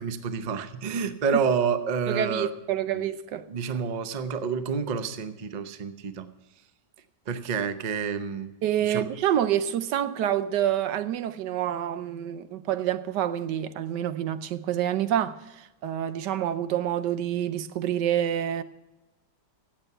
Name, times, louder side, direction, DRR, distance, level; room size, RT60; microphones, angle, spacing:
voice 1, 0.0-2.5 2.9-3.1 3.5-6.3 7.3-8.5 8.8-9.0, right 6 dB, 45° right, 0.5 m, -29 dB
voice 2, 2.1-3.5 8.6-18.6, right 10 dB, 85° right, 1.3 m, -27 dB
16.0 x 7.9 x 5.5 m
omnidirectional pair, 1.8 m